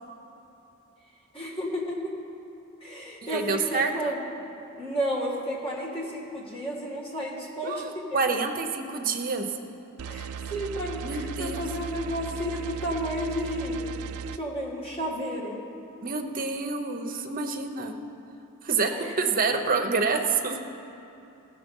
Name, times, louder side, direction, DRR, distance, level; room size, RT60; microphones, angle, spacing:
voice 1, 1.3-2.1 2.8-4.2 4.8-8.1 10.0-13.8 14.4-15.6 18.9-19.2, equal, 25° left, -4 dB, 1.8 m, -32 dB
voice 2, 3.2-4.2 7.6-9.5 11.0-11.7 16.0-17.9 18.6-18.9 19.2-20.6, right 4 dB, 40° right, 5 dB, 0.7 m, -27 dB
sound 1, 10.0-14.4, right 7 dB, 90° right, 0.3 m, -36 dB
16.5 x 6.7 x 5.4 m, 2.8 s
head